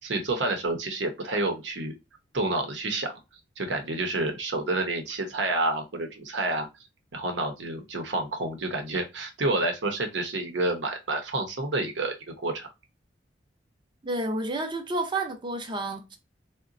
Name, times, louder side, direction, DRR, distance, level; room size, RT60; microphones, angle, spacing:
voice 1, 0.0-1.9 2.3-3.1 3.6-6.7 7.1-12.1 12.4-12.7, right 2 dB, 75° right, 0.8 m, -29 dB
voice 2, 14.0-16.2, right 2 dB, 25° right, 0.6 m, -30 dB
3.9 x 2.2 x 2.5 m
head